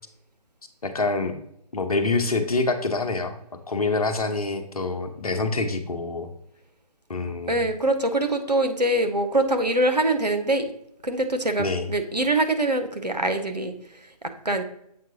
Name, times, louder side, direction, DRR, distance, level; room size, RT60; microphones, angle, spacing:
voice 1, 0.8-1.4 1.7-3.3 3.7-6.3 7.1-7.6 11.6-11.9, left 3 dB, 65° left, 7 dB, 0.9 m, -26 dB
voice 2, 7.5-10.7 11.0-14.6, right 1 dB, 90° right, 6 dB, 0.9 m, -24 dB
7.4 x 4.6 x 2.8 m, 0.73 s
figure-of-eight pair, 145°, 21 cm